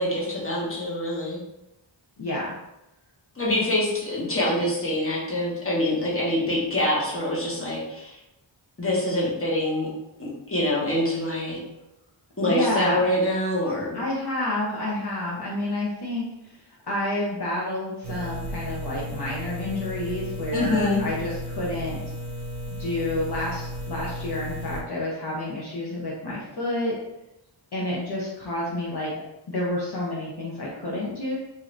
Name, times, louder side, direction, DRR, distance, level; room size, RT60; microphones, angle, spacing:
voice 1, 0.0-1.4 3.4-8.2 8.8-9.9 10.2-11.6 12.4-14.0 20.5-21.0, left 1 dB, 30° left, -5 dB, 1.1 m, -25 dB
voice 2, 2.2-2.5 12.4-13.1 13.9-16.6 16.9-22.0 22.8-27.0 27.7-29.1 29.5-31.3, left 1 dB, 55° left, -6 dB, 0.8 m, -29 dB
sound 1, 18.0-24.8, equal, 60° right, 0.7 m, -34 dB
2.7 x 2.5 x 3.1 m, 0.87 s
wide cardioid pair, 55°, 47 cm